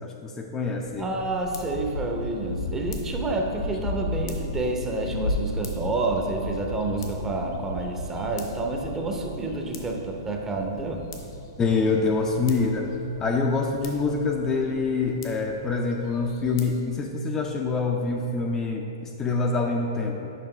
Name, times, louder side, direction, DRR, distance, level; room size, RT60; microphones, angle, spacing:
voice 1, 0.0-1.2 11.6-12.9 13.2-20.3, left 3 dB, 20° left, 1 dB, 0.4 m, -26 dB
sound 1, 0.8-16.8, left 2 dB, 65° left, 0.9 m, -36 dB
voice 2, 1.0-11.0, right 2 dB, 15° right, 2 dB, 0.7 m, -29 dB
6.8 x 5.2 x 3.2 m, 2.8 s
hypercardioid pair, 120°, 2 cm